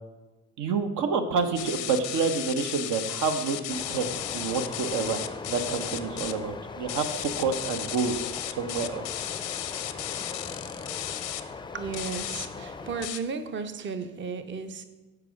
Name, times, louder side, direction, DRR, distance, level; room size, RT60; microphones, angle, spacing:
voice 1, 0.6-5.2 5.5-8.3 8.6-9.0, right 5 dB, 80° right, 7 dB, 0.8 m, -28 dB
sound 1, 1.6-6.3 6.9-11.4 11.9-12.5 13.0-13.2, left 13 dB, 85° left, 0.6 m, -35 dB
sound 2, 3.7-13.1, left 4 dB, 15° left, 0.4 m, -39 dB
voice 2, 11.7-14.8, right 5 dB, 40° right, 9 dB, 0.6 m, -34 dB
6.7 x 4.7 x 6.2 m, 1.2 s
cardioid pair, 90°, 30 cm